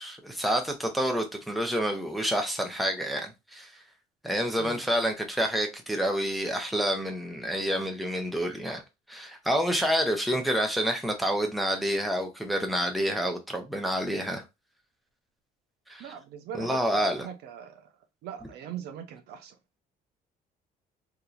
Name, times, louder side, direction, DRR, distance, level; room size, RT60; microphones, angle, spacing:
voice 1, 0.0-3.7 4.2-8.8 9.1-14.4 15.9-16.1 16.5-17.3, equal, ahead, 0.9 m, -28 dB
voice 2, 16.0-17.9 18.2-19.5, right 9 dB, 75° right, 0.7 m, -41 dB
3.6 x 2.9 x 2.5 m
cardioid pair, 110°, 17 cm